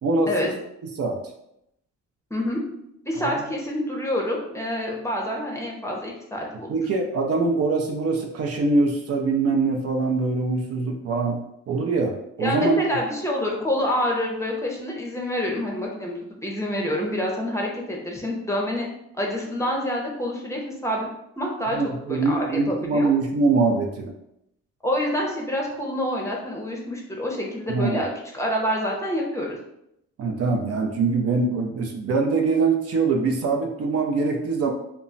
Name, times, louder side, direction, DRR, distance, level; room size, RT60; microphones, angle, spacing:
voice 1, 0.0-0.6 1.0-1.2 3.2-3.4 6.7-11.4 11.7-12.8 21.7-24.1 27.7-28.0 30.2-34.7, right 3 dB, 55° right, 2 dB, 0.5 m, -23 dB
voice 2, 3.0-6.7 12.4-18.9 19.2-21.1 21.4-21.8 22.1-23.1 24.8-29.6, left 1 dB, 10° left, -2 dB, 0.6 m, -27 dB
2.2 x 2.0 x 3.8 m, 0.80 s
cardioid pair, 90°, 30 cm